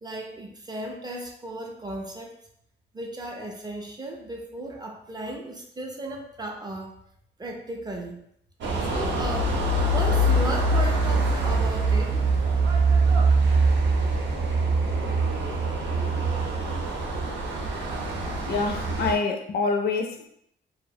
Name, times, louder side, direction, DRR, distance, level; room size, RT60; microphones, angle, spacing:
voice 1, 0.0-2.4 2.9-6.9 7.4-8.2 8.8-9.5 9.9-12.2, right 1 dB, 20° right, 1 dB, 0.4 m, -35 dB
Beach ambience, 8.6-19.1, right 2 dB, 65° right, 0.6 m, -23 dB
voice 2, 18.3-20.3, left 4 dB, 55° left, 4 dB, 0.4 m, -26 dB
2.3 x 2.0 x 2.6 m, 0.72 s
cardioid pair, 90°, 20 cm